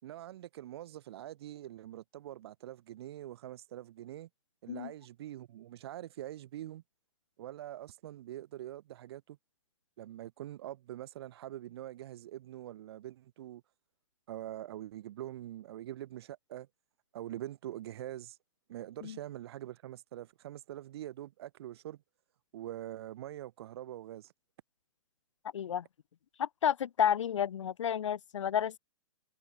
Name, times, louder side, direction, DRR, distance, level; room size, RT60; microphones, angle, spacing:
voice 1, 0.0-4.3 4.6-6.8 7.4-9.4 10.0-13.6 14.3-16.7 17.1-18.4 18.7-22.0 22.5-24.3, right 13 dB, 50° right, 3.9 m, -44 dB
voice 2, 25.5-25.9 26.4-28.8, left 9 dB, 65° left, 4.2 m, -31 dB
hypercardioid pair, 140°, 17 cm